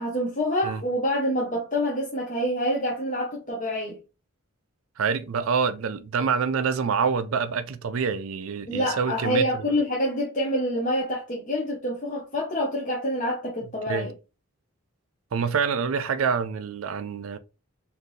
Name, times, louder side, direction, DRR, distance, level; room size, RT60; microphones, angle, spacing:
voice 1, 0.0-4.0 8.7-14.1, equal, 35° left, 0.8 m, -27 dB
voice 2, 5.0-9.7 13.9-14.1 15.3-17.4, right 6 dB, 75° right, 0.4 m, -26 dB
4.4 x 2.7 x 3.2 m
head